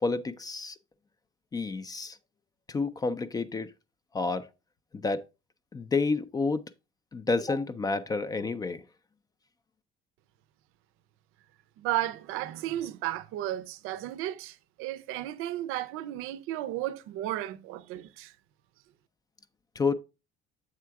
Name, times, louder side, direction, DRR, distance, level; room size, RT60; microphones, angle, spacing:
voice 1, 0.0-0.8 1.5-2.2 2.7-3.7 4.1-4.5 4.9-5.2 5.7-6.6 7.1-8.8 19.8-19.9, left 3 dB, 20° left, 0.3 m, -29 dB
voice 2, 11.8-18.3, right 14 dB, 85° right, 0.5 m, -34 dB
7.6 x 3.6 x 4.5 m
cardioid pair, 155°, 21 cm